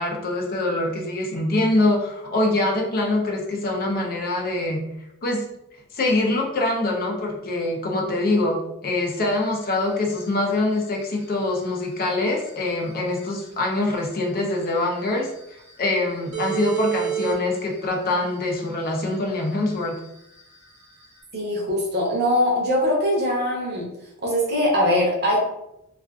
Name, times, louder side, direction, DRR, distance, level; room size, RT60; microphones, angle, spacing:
voice 1, 0.0-4.9 5.2-5.5 5.9-15.3 15.8-20.0, left 2 dB, 45° left, 0 dB, 0.5 m, -24 dB
sound 1, 9.1-21.2, right 9 dB, 80° right, 0.9 m, -34 dB
voice 2, 21.3-23.9 24.2-25.4, left 1 dB, 50° right, -2 dB, 0.7 m, -22 dB
2.4 x 2.3 x 2.3 m, 0.84 s
head